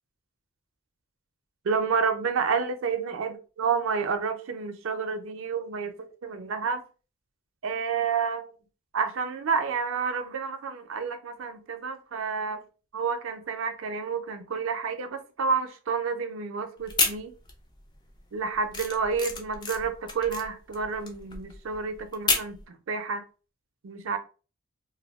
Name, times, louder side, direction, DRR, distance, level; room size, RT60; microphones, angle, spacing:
voice 1, 1.6-6.8 7.6-8.5 8.9-12.6 12.9-17.3 18.3-23.2 23.8-24.2, right 5 dB, 65° right, 0.4 m, -29 dB
sound 1, 16.8-17.8 18.1-22.6, left 3 dB, 20° left, 0.4 m, -30 dB
2.2 x 2.0 x 3.4 m
head